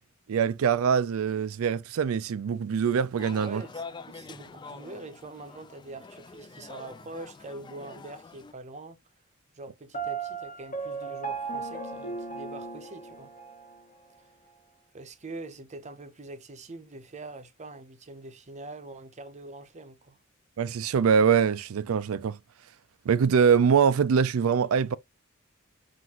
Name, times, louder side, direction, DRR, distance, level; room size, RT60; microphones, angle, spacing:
voice 1, 0.3-3.6 20.6-22.4 23.1-24.9, right 7 dB, 80° right, 0.4 m, -23 dB
sound 1, 3.2-8.5, left 4 dB, 20° left, 0.3 m, -45 dB
voice 2, 3.4-9.0 9.6-13.3 14.9-20.2, right 2 dB, 35° right, 0.7 m, -44 dB
Piano, 9.9-13.8, right 4 dB, 40° left, 1.0 m, -36 dB
5.8 x 2.6 x 2.8 m
head